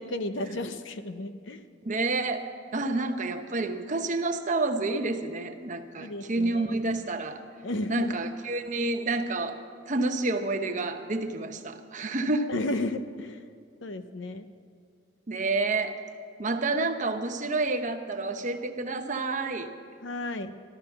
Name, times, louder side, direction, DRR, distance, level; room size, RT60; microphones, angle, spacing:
voice 1, 0.0-1.6 6.0-6.5 7.6-8.1 12.5-13.4 13.8-14.5 20.0-20.5, left 2 dB, 80° left, 10 dB, 0.8 m, -33 dB
voice 2, 1.8-7.4 7.9-12.5 15.3-16.0 16.4-19.7, right 2 dB, 40° right, 7 dB, 0.9 m, -29 dB
14.0 x 13.5 x 5.9 m, 2.2 s
head